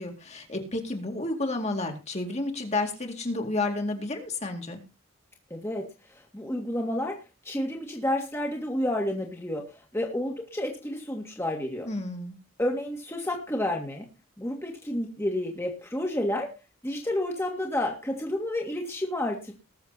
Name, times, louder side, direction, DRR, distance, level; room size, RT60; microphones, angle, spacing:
voice 1, 0.0-4.8 11.8-12.4, left 2 dB, 30° left, 3 dB, 2.4 m, -31 dB
voice 2, 5.5-5.8 6.1-7.2 7.4-11.9 12.6-14.1 14.4-16.5 16.8-19.5, left 1 dB, 10° left, 0 dB, 1.9 m, -30 dB
20.0 x 7.0 x 4.1 m, 0.29 s
head